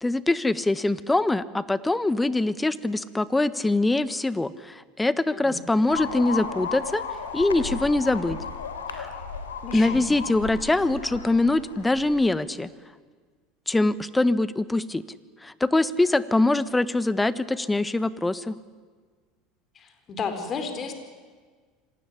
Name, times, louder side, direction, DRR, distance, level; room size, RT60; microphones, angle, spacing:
voice 1, 0.0-7.0 7.3-8.4 8.9-9.1 9.7-12.7 13.7-15.0 15.4-18.5, left 2 dB, 10° left, 16 dB, 1.4 m, -23 dB
voice 2, 5.3-5.7 9.6-10.1 19.8-20.9, left 5 dB, 40° left, 7 dB, 4.5 m, -33 dB
sound 1, 5.9-12.2, left 5 dB, 85° left, 3.2 m, -35 dB
26.0 x 19.5 x 10.0 m, 1.5 s
hypercardioid pair, 75°, 0 cm